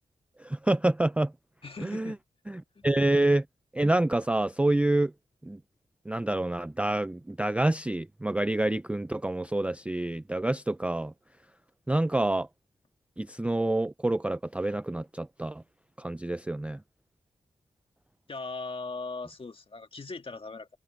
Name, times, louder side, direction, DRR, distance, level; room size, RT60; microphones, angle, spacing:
voice 1, 0.4-1.3 1.8-2.1 2.8-3.4 3.7-5.1 5.4-5.6 6.1-11.1 11.9-12.5 13.2-15.6 16.0-16.8, right 2 dB, 10° right, 0.4 m, -27 dB
voice 2, 1.6-2.2 2.8-2.9 18.3-20.7, left 3 dB, 35° left, 1.9 m, -39 dB
wide cardioid pair, 130°, 16 cm